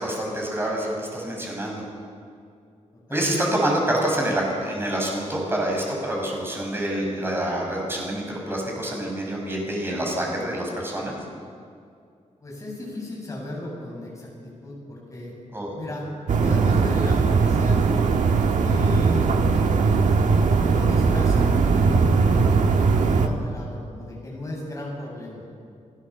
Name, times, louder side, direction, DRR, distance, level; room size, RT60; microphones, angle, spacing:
voice 1, 0.0-1.8 3.1-11.1 15.5-15.7, right 1 dB, 20° right, -1 dB, 5.8 m, -27 dB
voice 2, 2.9-3.4 12.4-17.8 18.6-19.7 20.7-25.4, left 1 dB, 25° left, -3 dB, 7.6 m, -35 dB
sound 1, 16.3-23.3, right 4 dB, 80° right, 1.5 m, -19 dB
29.5 x 16.0 x 7.1 m, 2.3 s
wide cardioid pair, 170°, 12 cm